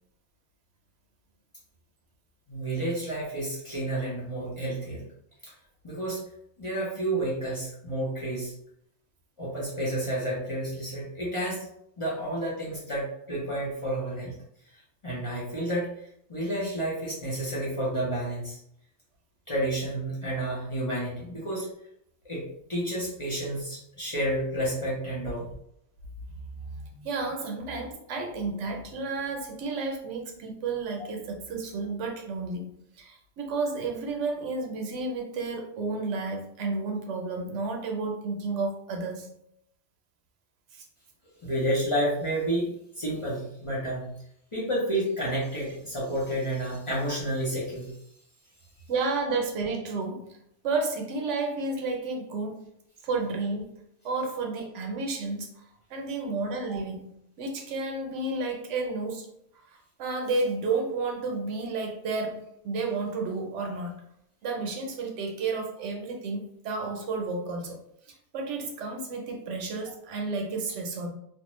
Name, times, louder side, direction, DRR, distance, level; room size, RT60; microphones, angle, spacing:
voice 1, 2.5-5.0 5.4-5.5 5.8-6.2 6.6-8.5 9.4-11.7 12.0-14.3 15.0-15.9 16.3-18.6 19.5-21.7 22.2-22.4 22.7-25.5 41.4-42.7 43.0-44.1 44.5-48.0, right 1 dB, 35° left, -6 dB, 0.6 m, -30 dB
voice 2, 26.9-39.3 40.7-40.8 48.9-50.4 50.6-52.6 53.0-53.7 54.0-55.6 55.9-59.3 60.0-64.0 64.4-67.8 68.3-71.1, right 3 dB, 85° right, 3 dB, 0.9 m, -31 dB
2.4 x 2.1 x 3.0 m, 0.74 s
omnidirectional pair, 1.2 m